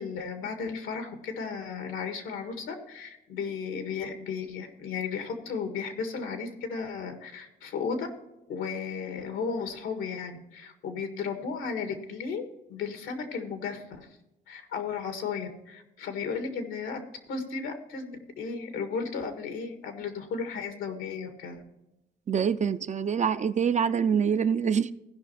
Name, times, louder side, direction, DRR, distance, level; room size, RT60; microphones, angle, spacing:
voice 1, 0.0-8.1 8.5-14.1 14.5-17.0 17.3-21.6, left 5 dB, 85° left, 1.8 m, -34 dB
voice 2, 22.3-24.9, right 7 dB, 35° right, 0.5 m, -25 dB
16.0 x 5.5 x 4.2 m
cardioid pair, 90°, 20 cm